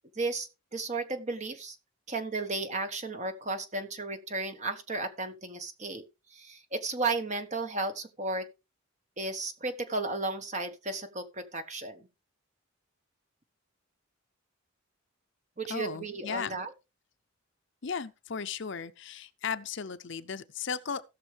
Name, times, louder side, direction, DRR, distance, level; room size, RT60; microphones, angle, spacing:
voice 1, 0.1-1.8 2.1-6.0 6.3-8.5 9.2-12.1 15.6-16.7, right 3 dB, 35° right, 1.3 m, -34 dB
voice 2, 15.7-16.6 17.8-21.0, left 6 dB, 55° left, 0.6 m, -36 dB
17.0 x 6.4 x 3.4 m
head